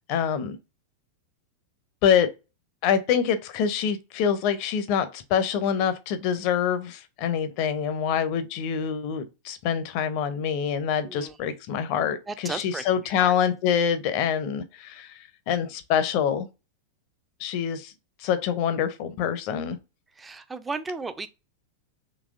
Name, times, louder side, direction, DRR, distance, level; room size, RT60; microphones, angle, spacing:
voice 1, 0.1-0.6 2.0-2.3 2.8-15.2 15.5-16.5 17.4-17.9 18.2-19.8, left 8 dB, 45° left, 0.6 m, -25 dB
voice 2, 11.0-11.5 12.3-12.8 13.2-13.4 20.2-21.3, right 4 dB, 15° right, 0.4 m, -35 dB
4.0 x 2.9 x 2.4 m
figure-of-eight pair, 90°, 0 cm